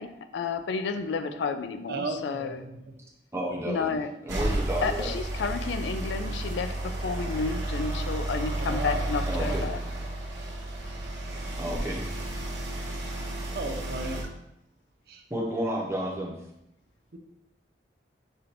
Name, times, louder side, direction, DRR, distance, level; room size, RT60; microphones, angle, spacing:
voice 1, 0.0-2.6 3.7-4.1 4.8-9.8, left 4 dB, 85° left, 9 dB, 0.4 m, -31 dB
voice 2, 1.9-2.8 8.5-9.0 13.5-14.2 15.1-15.2, right 3 dB, 60° right, 4 dB, 0.5 m, -35 dB
voice 3, 3.3-4.0 4.2-5.1 9.3-9.7 11.6-12.0 15.3-16.3, right 1 dB, 15° right, -2 dB, 0.8 m, -31 dB
sound 1, 4.3-14.2, right 1 dB, 80° right, 1.1 m, -32 dB
6.6 x 2.5 x 2.9 m, 0.84 s
head